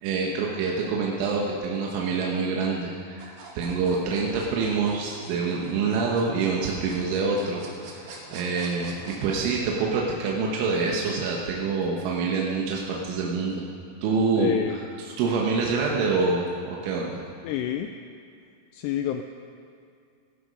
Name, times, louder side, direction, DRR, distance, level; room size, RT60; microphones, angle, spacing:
voice 1, 0.0-13.6 14.0-14.5 15.2-17.2, right 4 dB, 90° right, -2 dB, 3.6 m, -26 dB
sound 1, 3.2-9.6, right 3 dB, 55° right, 2.4 m, -45 dB
voice 2, 14.4-14.8 17.4-17.9 18.7-19.2, left 11 dB, 85° left, 7 dB, 2.4 m, -28 dB
16.0 x 14.0 x 5.3 m, 2.4 s
omnidirectional pair, 5.3 m